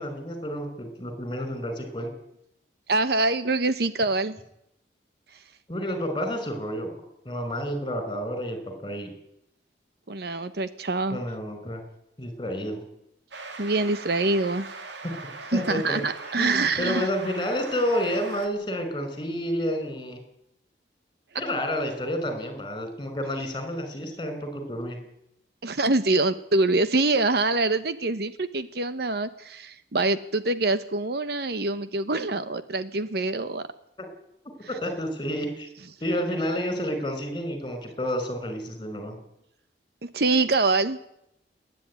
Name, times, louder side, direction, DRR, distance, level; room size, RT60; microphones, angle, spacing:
voice 1, 0.0-2.1 5.7-6.9 7.2-9.1 11.1-11.8 12.2-12.8 15.5-16.0 16.4-20.2 21.3-25.0 34.7-35.7 36.0-39.1, equal, 25° left, 7 dB, 5.1 m, -30 dB
voice 2, 2.9-4.4 10.1-11.2 13.6-14.7 15.5-17.1 25.6-33.7 40.0-41.0, right 2 dB, 60° right, 12 dB, 1.0 m, -25 dB
sound 1, 13.3-18.5, right 3 dB, 85° right, 2.4 m, -40 dB
26.5 x 10.5 x 9.7 m, 0.81 s
head